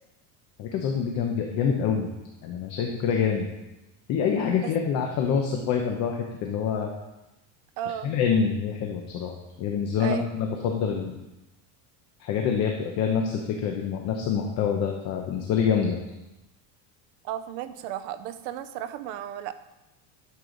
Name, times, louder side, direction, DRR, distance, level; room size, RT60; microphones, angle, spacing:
voice 1, 0.6-2.1 2.4-3.5 4.1-6.9 8.0-9.3 9.6-11.2 12.2-16.0, left 7 dB, 35° left, 2 dB, 0.8 m, -26 dB
voice 2, 7.8-8.1 10.0-10.3 17.2-19.5, right 11 dB, 60° right, 11 dB, 0.6 m, -34 dB
11.0 x 6.8 x 3.9 m, 0.98 s
cardioid pair, 180°, 43 cm